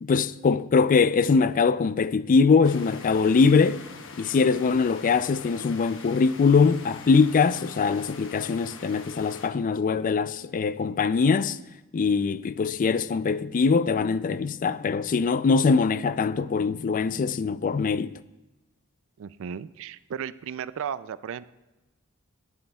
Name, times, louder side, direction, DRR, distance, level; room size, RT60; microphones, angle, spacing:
voice 1, 0.0-3.8 4.1-11.6 11.9-18.1, left 5 dB, 40° left, 0.3 m, -22 dB
sound 1, 2.6-9.5, left 4 dB, 65° left, 1.1 m, -44 dB
voice 2, 19.2-21.5, right 8 dB, 65° right, 0.4 m, -35 dB
18.5 x 11.5 x 2.3 m
head